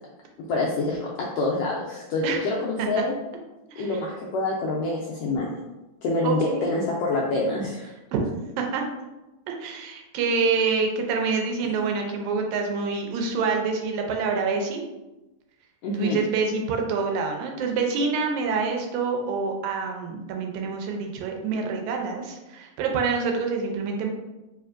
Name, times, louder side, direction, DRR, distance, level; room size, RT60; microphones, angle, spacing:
voice 1, 0.4-3.1 3.8-5.6 6.0-7.9 15.8-16.2, left 2 dB, 85° left, -3 dB, 1.4 m, -26 dB
voice 2, 6.2-6.8 8.1-8.3 8.6-8.8 9.5-14.8 16.0-24.1, right 4 dB, 85° right, 2 dB, 2.0 m, -26 dB
4.5 x 3.0 x 2.4 m, 1.0 s
omnidirectional pair, 3.3 m